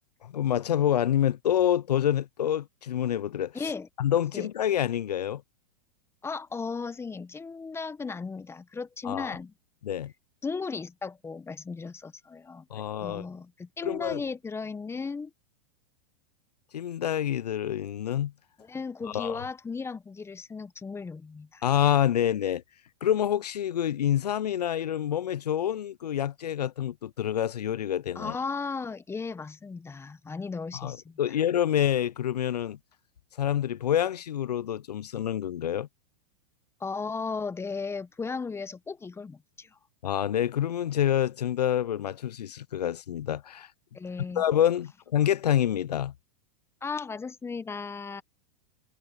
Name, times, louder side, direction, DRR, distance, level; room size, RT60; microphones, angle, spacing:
voice 1, 0.2-3.7 4.0-5.4 9.0-9.4 9.8-10.1 12.7-13.3 13.8-14.2 16.7-18.3 19.0-19.4 21.6-22.6 23.0-28.3 30.7-32.8 33.4-35.9 40.0-43.7 44.4-46.1, left 10 dB, 85° left, 0.6 m, -27 dB
voice 2, 3.5-3.9 4.3-4.5 6.2-9.5 10.4-12.7 13.0-15.3 18.6-21.6 28.1-31.2 36.8-39.8 43.9-44.4 46.8-48.2, left 4 dB, 10° left, 1.3 m, -36 dB
hypercardioid pair, 110°, 20 cm